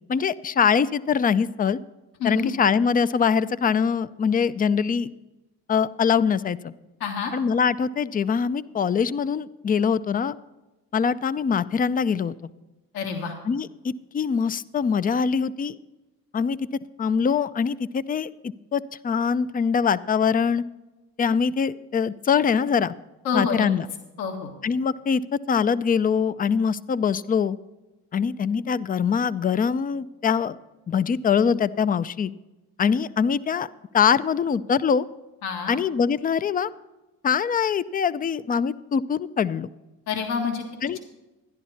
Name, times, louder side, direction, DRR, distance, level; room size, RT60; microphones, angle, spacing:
voice 1, 0.1-1.8 2.2-5.1 5.7-6.7 7.3-10.4 10.9-12.4 13.4-15.8 16.3-16.6 17.0-18.3 18.7-20.6 21.2-22.9 23.3-23.9 24.6-25.2 25.5-27.6 28.1-30.6 30.9-32.3 32.8-33.7 33.9-35.0 35.7-36.7 37.2-39.7 40.8-41.0, left 6 dB, 25° left, 16 dB, 0.4 m, -23 dB
voice 2, 2.2-2.5 7.0-7.3 12.9-13.3 23.2-23.7 24.2-24.5 35.4-35.8 40.1-40.6, left 6 dB, 75° left, 2 dB, 1.9 m, -27 dB
13.0 x 11.0 x 4.1 m, 1.1 s
hypercardioid pair, 60°, 38 cm